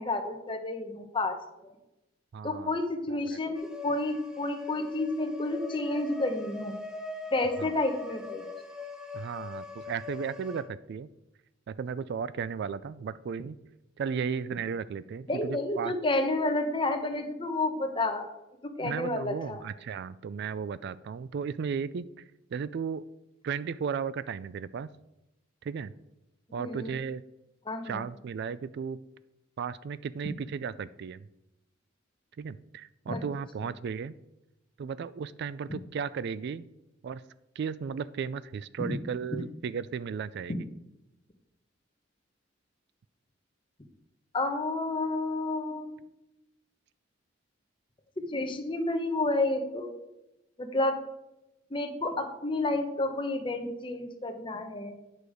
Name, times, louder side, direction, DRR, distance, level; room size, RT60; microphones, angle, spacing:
voice 1, 0.0-1.4 2.4-6.8 7.3-8.4 15.3-18.3 18.8-19.6 26.6-27.0 27.7-28.0 33.1-33.2 38.8-39.0 44.3-46.0 48.3-49.9 50.6-51.0 51.7-54.9, left 2 dB, 25° left, 6 dB, 1.0 m, -30 dB
voice 2, 2.3-2.8 3.1-3.4 7.6-7.7 9.1-11.1 11.7-13.6 14.0-15.9 18.8-22.0 22.5-23.0 23.4-24.9 25.6-25.9 26.5-27.2 27.8-29.0 29.6-31.3 32.4-34.1 34.8-36.6 37.0-37.2 37.6-40.7, right 6 dB, 60° right, 17 dB, 0.3 m, -35 dB
sound 1, 3.5-10.6, left 3 dB, 5° right, 0.9 m, -41 dB
9.2 x 6.4 x 4.9 m, 0.92 s
head